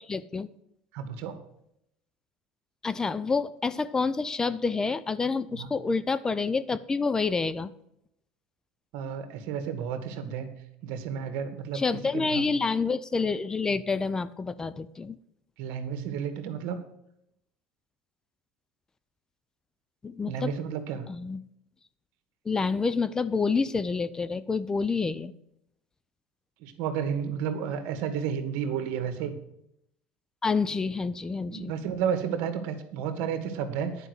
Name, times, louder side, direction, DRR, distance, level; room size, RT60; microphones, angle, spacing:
voice 1, 0.1-0.5 2.8-7.7 11.7-15.1 20.0-20.5 21.1-21.4 22.5-25.3 30.4-31.7, left 4 dB, 20° left, 15 dB, 0.5 m, -28 dB
voice 2, 0.9-1.4 5.5-5.7 8.9-10.5 10.8-11.8 12.1-12.5 15.6-16.8 20.3-21.1 26.6-29.3 31.5-34.1, right 7 dB, 70° right, 9 dB, 1.7 m, -32 dB
10.0 x 5.4 x 8.0 m, 0.77 s
supercardioid pair, 115°, 3 cm